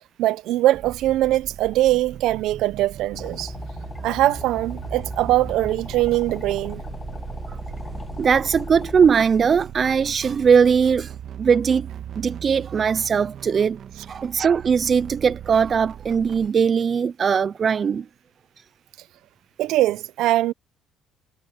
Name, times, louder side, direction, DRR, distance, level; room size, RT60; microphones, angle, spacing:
voice 1, 0.2-3.5 4.0-6.8 19.6-20.5, right 15 dB, 75° right, 0.8 m, -21 dB
sound 1, 0.7-16.5, right 9 dB, 55° right, 1.4 m, -38 dB
sound 2, 3.1-9.1, left 4 dB, 20° left, 1.5 m, -37 dB
voice 2, 8.2-11.1 11.4-11.9 12.2-13.8 14.1-18.0, right 6 dB, 40° right, 0.4 m, -20 dB
cardioid pair, 115°, 0 cm